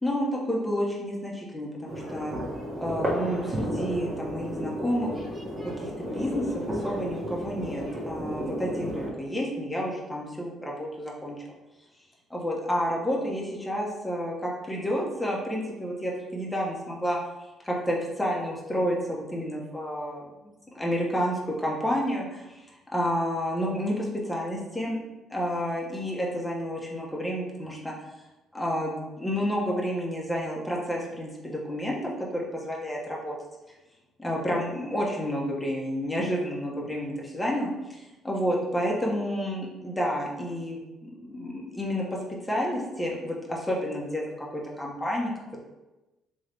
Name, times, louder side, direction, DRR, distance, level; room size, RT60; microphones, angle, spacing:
voice 1, 0.0-2.4 2.8-5.1 5.8-11.4 12.3-17.2 17.6-22.7 22.9-25.0 25.3-27.9 28.5-33.4 34.2-42.0 42.4-45.3, equal, 10° left, -3 dB, 1.1 m, -30 dB
sound 1, 1.9-9.1, equal, 30° right, 1.3 m, -32 dB
3.5 x 3.1 x 3.4 m, 1.1 s
cardioid pair, 85°, 0 cm